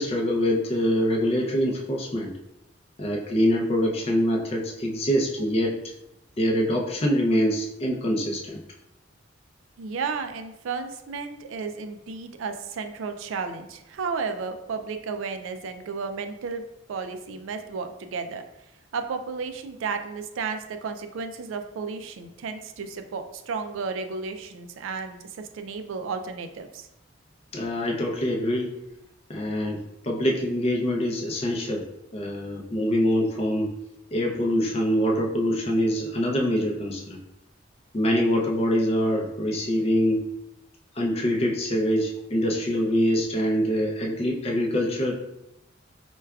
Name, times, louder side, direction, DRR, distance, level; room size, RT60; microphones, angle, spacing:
voice 1, 0.0-2.3 3.0-5.8 6.4-8.6 27.5-28.7 29.3-31.8 32.1-33.7 34.1-37.2 37.9-40.3 41.0-45.1, equal, 30° left, -1 dB, 0.5 m, -24 dB
voice 2, 9.8-16.6 16.9-18.4 18.9-26.9, right 5 dB, 80° right, 7 dB, 0.3 m, -33 dB
4.6 x 2.2 x 2.3 m, 0.87 s
head